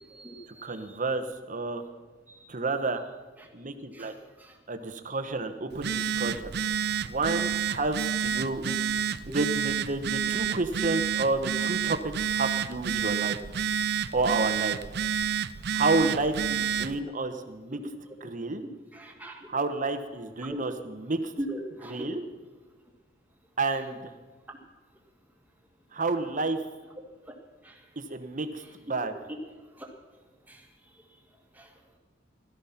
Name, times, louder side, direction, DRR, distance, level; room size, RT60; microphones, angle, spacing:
voice 1, 0.1-1.0 2.3-2.4 3.9-4.1 4.4-4.5 9.3-9.4 18.9-19.5 20.4-20.6 21.4-22.1 27.6-27.7 29.8-29.9 30.5-30.6 31.6-31.7, right 1 dB, 10° right, 0 dB, 2.2 m, -39 dB
voice 2, 0.6-1.8 2.5-3.0 3.5-4.1 4.7-6.5 7.0-8.9 9.3-13.4 14.1-14.8 15.7-17.8 18.2-18.6 19.5-21.3 21.8-22.2 23.6-24.1 25.9-26.6 28.0-28.5 28.8-29.1, right 3 dB, 45° right, 8 dB, 1.2 m, -30 dB
Telephone, 5.7-17.0, right 8 dB, 60° right, 0.5 m, -29 dB
17.0 x 13.0 x 5.8 m, 1.3 s
head